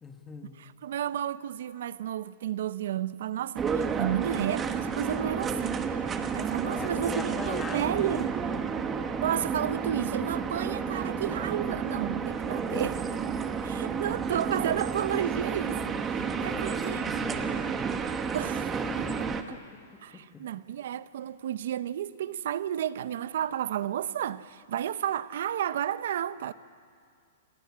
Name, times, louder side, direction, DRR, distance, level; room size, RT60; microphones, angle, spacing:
voice 1, 0.0-0.6 6.5-8.3 16.4-17.6 18.2-18.4 18.9-19.2 19.5-19.6, left 4 dB, 10° left, 1.5 m, -40 dB
voice 2, 0.6-5.8 6.3-8.3 9.2-13.0 13.6-17.1 18.3-19.3 20.0-26.5, right 10 dB, 60° right, 0.8 m, -32 dB
sound 1, 3.6-19.4, right 6 dB, 15° right, 1.0 m, -31 dB
29.5 x 18.5 x 9.7 m
hypercardioid pair, 170°, 0 cm